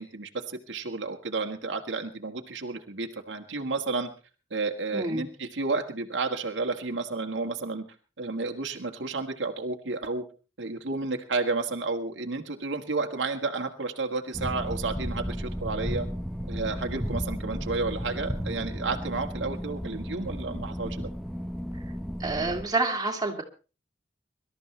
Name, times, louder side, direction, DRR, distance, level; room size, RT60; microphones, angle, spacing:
voice 1, 0.0-4.1 4.5-7.9 8.2-10.2 10.6-16.1 16.5-21.1, right 3 dB, 85° right, 4 dB, 1.6 m, -31 dB
voice 2, 4.9-5.2 22.2-23.4, right 3 dB, 20° right, 1 dB, 2.5 m, -28 dB
sound 1, 14.3-22.6, equal, ahead, 0.7 m, -34 dB
24.0 x 13.0 x 3.2 m, 0.34 s
head